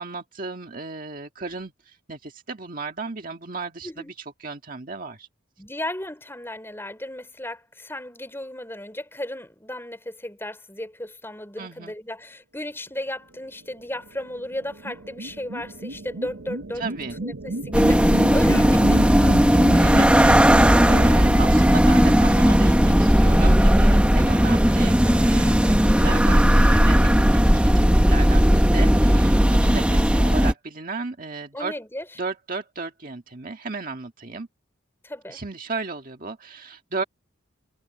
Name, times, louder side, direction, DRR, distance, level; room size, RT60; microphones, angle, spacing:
voice 1, 0.0-4.1 4.4-5.3 11.6-11.9 16.8-17.2 19.7-31.7 32.2-34.5 35.3-37.0, right 4 dB, 40° right, 1.9 m, -34 dB
voice 2, 5.6-16.8 17.2-19.6 24.2-24.5 31.5-32.0 35.0-35.4, left 1 dB, 10° left, 5.0 m, -35 dB
sound 1, 13.7-23.5, right 1 dB, 80° right, 1.0 m, -33 dB
sound 2, 17.7-30.5, equal, 5° right, 0.9 m, -16 dB
head